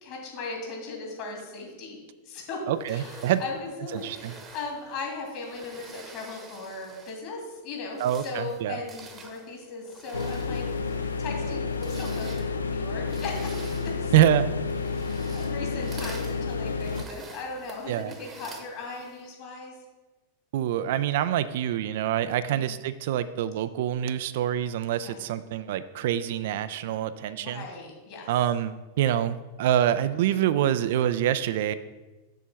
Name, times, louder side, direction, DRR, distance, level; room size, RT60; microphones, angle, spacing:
voice 1, 0.0-2.0 2.2-2.6 2.9-10.7 11.2-14.1 15.3-19.8 22.5-22.7 25.0-25.2 27.3-28.3, left 3 dB, 45° left, -1 dB, 2.6 m, -38 dB
sound 1, 2.7-7.3 7.8-19.3, right 4 dB, 20° right, 1.0 m, -48 dB
voice 2, 2.7-3.4 3.9-4.3 8.0-8.8 14.1-14.5 17.9-18.1 20.5-27.7 28.3-31.7, right 11 dB, 55° right, 13 dB, 0.3 m, -26 dB
sound 2, 10.1-17.1, left 4 dB, 75° left, 0.4 m, -30 dB
6.9 x 4.4 x 6.2 m, 1.2 s
figure-of-eight pair, 90°, 0 cm